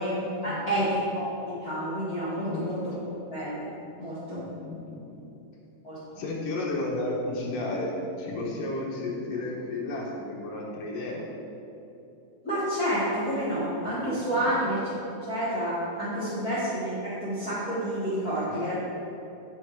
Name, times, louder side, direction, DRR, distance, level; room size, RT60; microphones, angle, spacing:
voice 1, 0.0-2.9 3.3-3.7 4.0-4.4 5.8-6.0 12.4-14.8 15.3-18.7, equal, 40° left, -11 dB, 1.4 m, -29 dB
voice 2, 2.3-2.7 4.3-5.2 6.2-11.2 14.0-14.5 16.3-16.5 18.3-18.7, left 2 dB, 65° left, -3 dB, 2.4 m, -33 dB
10.5 x 6.4 x 4.7 m, 2.9 s
omnidirectional pair, 4.8 m